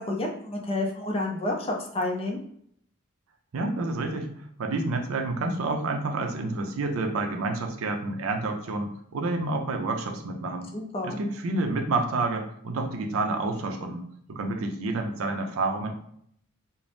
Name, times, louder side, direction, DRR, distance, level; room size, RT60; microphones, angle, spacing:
voice 1, 0.0-2.4 10.7-11.2, left 2 dB, 30° left, 1 dB, 0.5 m, -29 dB
voice 2, 3.5-4.3 4.6-10.7 11.0-15.9, right 2 dB, 75° right, 5 dB, 0.4 m, -29 dB
2.6 x 2.0 x 3.3 m, 0.67 s
head